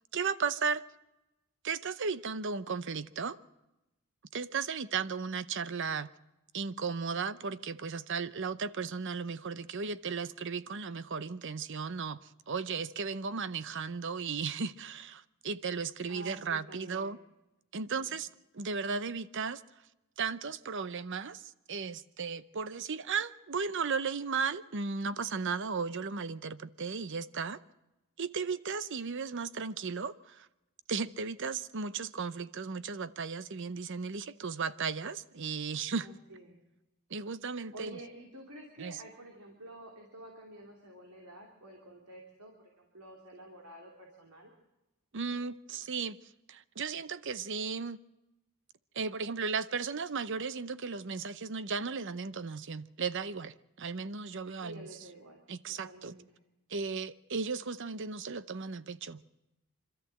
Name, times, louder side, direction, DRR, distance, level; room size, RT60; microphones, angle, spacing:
voice 1, 0.1-0.8 1.6-3.4 4.3-6.1 6.5-17.2 17.7-18.3 18.5-19.6 20.2-27.6 28.2-30.5 30.9-36.1 37.1-38.0 38.8-39.0 45.1-46.2 46.5-48.0 48.9-54.9 55.5-56.1 56.7-59.2, right 5 dB, 55° right, 0.7 m, -35 dB
voice 2, 16.1-17.2 17.9-18.1 36.0-36.6 37.7-44.5 54.6-55.4 55.8-56.3, right 1 dB, 85° right, 2.9 m, -50 dB
25.5 x 13.5 x 7.8 m
head